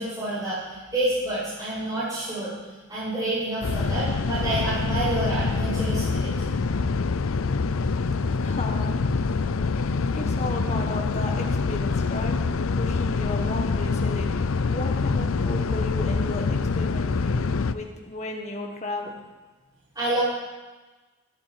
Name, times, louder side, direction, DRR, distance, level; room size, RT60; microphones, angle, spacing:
voice 1, 0.0-2.5 2.9-6.5 19.9-20.2, right 1 dB, 20° right, -15 dB, 6.2 m, -28 dB
sound 1, 3.6-17.7, left 4 dB, 80° left, 0.5 m, -25 dB
voice 2, 8.4-9.0 10.1-12.4 12.7-19.2, left 2 dB, 30° left, 1 dB, 1.4 m, -34 dB
12.5 x 10.0 x 7.6 m, 1.2 s
head